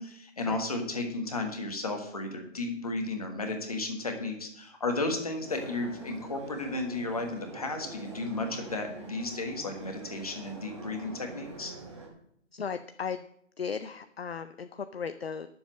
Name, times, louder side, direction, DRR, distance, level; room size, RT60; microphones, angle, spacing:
voice 1, 0.0-11.7, left 2 dB, 30° left, 4 dB, 1.5 m, -34 dB
sound 1, 5.4-12.1, right 2 dB, 20° right, 1.4 m, -45 dB
voice 2, 12.5-13.2 13.6-15.5, left 6 dB, 50° left, 10 dB, 0.5 m, -36 dB
10.5 x 7.1 x 6.3 m, 0.69 s
hypercardioid pair, 180°, 38 cm